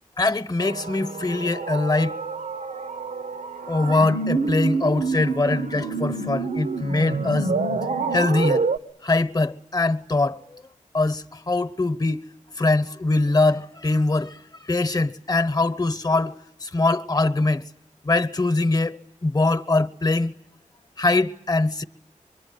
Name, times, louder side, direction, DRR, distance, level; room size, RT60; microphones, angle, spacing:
voice 1, 0.2-2.1 3.7-7.5 8.1-8.7 9.0-10.4 10.9-12.2 12.6-14.4 14.7-17.6 18.0-19.0 19.2-20.3 21.0-21.8, left 2 dB, 30° left, 1.0 m, -22 dB
sound 1, 0.6-8.8, right 4 dB, 80° right, 1.2 m, -27 dB
25.0 x 22.5 x 9.5 m
wide cardioid pair, 80°, 13 cm